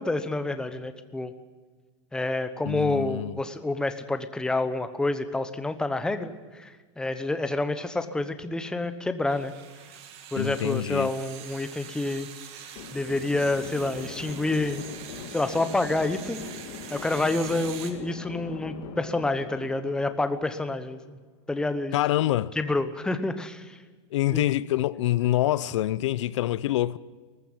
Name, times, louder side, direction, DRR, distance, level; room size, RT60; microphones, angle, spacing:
voice 1, 0.0-1.3 2.1-9.5 10.3-12.3 12.9-14.8 15.3-16.4 16.9-21.2 21.5-22.0 22.6-23.8 24.3-24.4, left 2 dB, 5° left, 1.0 m, -28 dB
voice 2, 2.7-3.3 10.4-11.1 21.9-22.5 24.1-27.0, left 14 dB, 85° left, 0.6 m, -25 dB
sound 1, 9.3-17.9, right 9 dB, 40° right, 2.1 m, -44 dB
sound 2, 12.8-21.0, left 6 dB, 50° left, 3.0 m, -42 dB
19.0 x 15.0 x 9.9 m
supercardioid pair, 155°, 15 cm